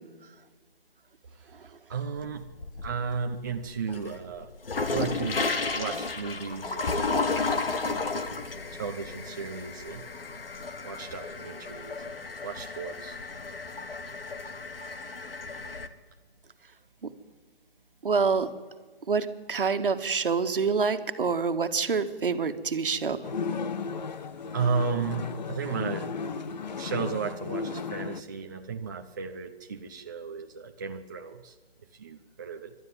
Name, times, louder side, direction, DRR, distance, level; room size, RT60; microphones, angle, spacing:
voice 1, 1.9-2.5 2.8-4.5 4.9-5.4 5.7-6.9 7.3-7.6 7.9-8.3 8.7-10.1 10.8-12.2 12.4-13.6 24.5-26.1 26.8-31.5 31.9-32.7, right 5 dB, 20° right, 3 dB, 0.6 m, -34 dB
sound 1, 2.2-3.1 3.6-15.9, left 3 dB, 65° left, 1.9 m, -33 dB
voice 2, 18.0-18.6 19.1-23.2, right 5 dB, 60° right, 8 dB, 1.7 m, -27 dB
sound 2, 23.2-28.2, left 5 dB, 45° left, 0.9 m, -34 dB
26.5 x 12.0 x 9.2 m, 1.4 s
figure-of-eight pair, 150°, 31 cm